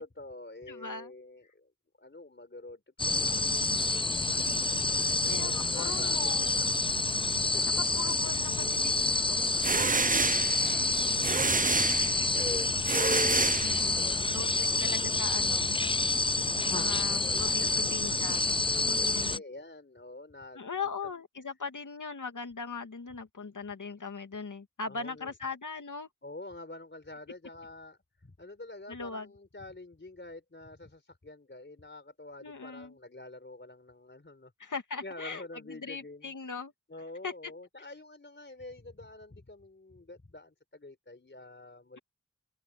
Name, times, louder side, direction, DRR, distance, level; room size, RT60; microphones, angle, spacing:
voice 1, 0.0-1.7 2.0-6.7 7.5-7.8 10.9-13.0 13.8-15.3 16.3-21.1 24.9-25.3 26.2-36.3 36.9-42.0, left 2 dB, 40° left, 4.1 m, -48 dB
voice 2, 0.7-1.1 5.2-6.6 7.9-10.6 12.9-13.2 13.6-15.8 16.7-18.4 18.8-19.4 20.5-26.1 28.9-29.3 32.4-32.9 34.6-36.7 37.2-37.3, left 4 dB, 80° left, 2.5 m, -40 dB
sound 1, 3.0-19.4, left 3 dB, 20° left, 0.4 m, -28 dB
sound 2, 9.3-14.2, right 4 dB, 25° right, 0.6 m, -29 dB
open air
wide cardioid pair, 60°, 30 cm